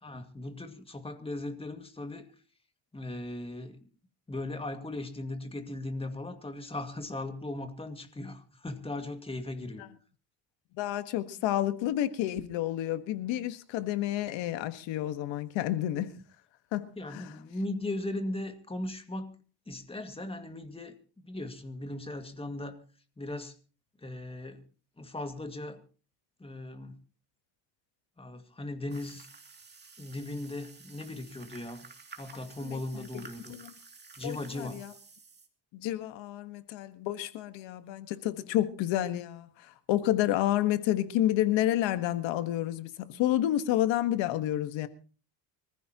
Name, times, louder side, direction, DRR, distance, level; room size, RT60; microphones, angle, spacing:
voice 1, 0.0-2.3 2.9-3.8 4.3-9.8 17.0-19.3 19.7-20.9 21.2-22.8 23.2-23.6 24.0-24.6 25.0-25.8 26.4-27.0 28.2-29.3 30.0-31.9 32.2-33.5 34.2-34.8, left 2 dB, 15° left, 2.1 m, -38 dB
voice 2, 10.7-16.1 16.7-17.3 32.6-33.7 34.2-34.9 35.7-44.9, left 13 dB, 85° left, 1.6 m, -30 dB
sound 1, 28.9-35.5, right 4 dB, 25° right, 2.7 m, -52 dB
25.0 x 14.5 x 2.9 m
cardioid pair, 120°, 44 cm